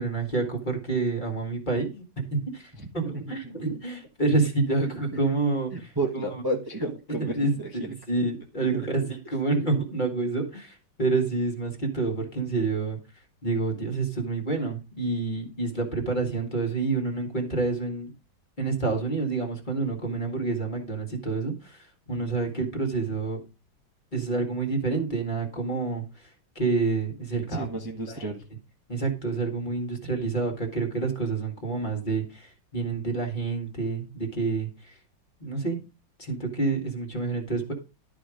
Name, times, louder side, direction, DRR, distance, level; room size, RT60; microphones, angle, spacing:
voice 1, 0.0-6.2 7.1-13.0 13.4-18.1 18.6-23.4 24.1-26.3 26.6-27.7 28.1-28.3 28.9-35.0 35.4-35.8 36.2-37.7, right 3 dB, 25° left, 2 dB, 2.0 m, -28 dB
voice 2, 5.7-7.9 8.6-8.8 27.5-28.4, right 2 dB, 15° right, 0 dB, 1.2 m, -32 dB
12.0 x 5.0 x 4.9 m, 0.30 s
omnidirectional pair, 2.0 m